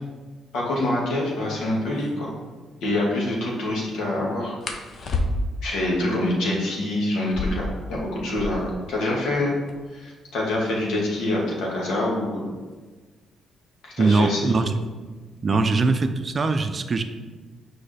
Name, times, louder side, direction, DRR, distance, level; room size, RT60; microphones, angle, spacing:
voice 1, 0.5-2.3 2.8-4.5 5.6-9.5 9.9-12.5 13.8-14.6 15.5-15.8, left 1 dB, 80° left, -3 dB, 1.8 m, -26 dB
sound 1, 1.9-2.1 4.6-5.7 7.2-8.8 9.1-9.2 9.4-10.0 10.6-13.2 14.2-14.5 14.9-15.4 15.7-16.4, left 2 dB, 55° left, 0.7 m, -31 dB
voice 2, 14.0-14.8 15.4-17.0, right 3 dB, 35° right, 8 dB, 0.5 m, -21 dB
6.4 x 4.8 x 3.4 m, 1.4 s
cardioid pair, 90°, 0 cm